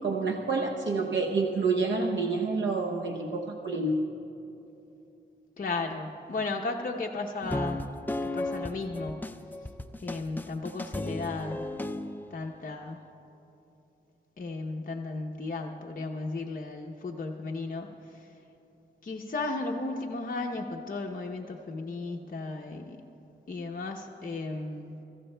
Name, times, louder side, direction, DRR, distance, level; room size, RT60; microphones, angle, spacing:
voice 1, 0.0-3.9, right 3 dB, 70° right, 1 dB, 0.8 m, -28 dB
voice 2, 5.6-7.8 8.2-9.3 10.0-11.7 12.3-13.0 14.4-18.3 19.0-23.0 23.5-25.0, left 3 dB, 45° left, 0 dB, 0.7 m, -35 dB
sound 1, 7.4-12.3, left 1 dB, 10° left, 0.4 m, -35 dB
23.5 x 15.0 x 2.2 m, 2.9 s
wide cardioid pair, 90°, 19 cm